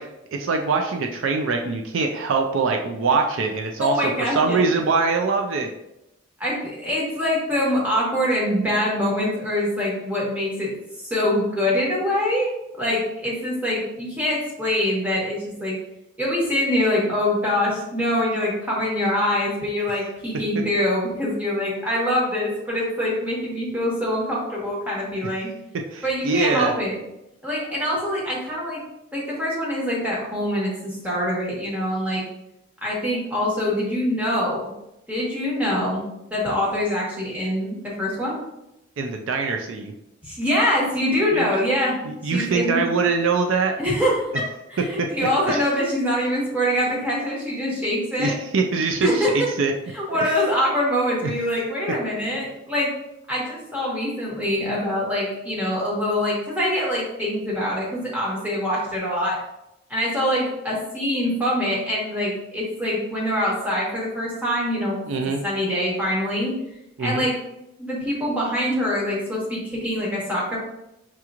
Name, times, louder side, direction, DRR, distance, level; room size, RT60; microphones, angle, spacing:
voice 1, 0.0-5.7 25.9-26.7 39.0-39.9 41.3-41.5 42.0-43.8 45.5-45.6 48.2-49.3 49.6-49.7 50.1-50.3 51.2-51.3 65.1-65.4 67.0-67.3, right 4 dB, 70° right, 3 dB, 0.4 m, -23 dB
voice 2, 3.8-4.6 6.4-10.7 11.0-12.5 12.8-15.7 16.2-25.5 26.0-27.0 27.4-28.8 29.1-32.2 32.8-34.7 35.1-36.0 36.3-38.4 40.2-42.0 42.2-42.8 43.8-44.2 44.7-48.3 49.0-49.3 49.9-52.9 53.3-59.4 59.9-65.0 65.4-66.5 67.0-67.3 67.8-70.6, left 1 dB, 5° right, -5 dB, 1.2 m, -24 dB
5.9 x 2.9 x 2.4 m, 0.87 s
head